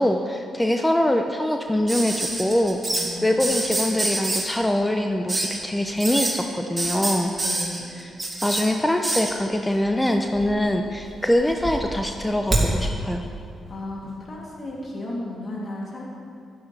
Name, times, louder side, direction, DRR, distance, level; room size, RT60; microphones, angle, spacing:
voice 1, 0.0-2.8 3.2-7.3 8.4-13.2, left 1 dB, 10° left, 4 dB, 0.6 m, -23 dB
sound 1, 1.9-3.1 3.4-4.5 5.3-5.6 6.0-6.3 6.8-8.6 9.0-9.3 10.4-10.9 11.3-12.7 14.0-14.1, right 2 dB, 25° right, 2.6 m, -26 dB
voice 2, 2.9-3.8 7.4-7.9 13.7-16.0, left 1 dB, 45° left, -4 dB, 2.9 m, -35 dB
12.0 x 10.0 x 3.4 m, 2.4 s
supercardioid pair, 50°, 0 cm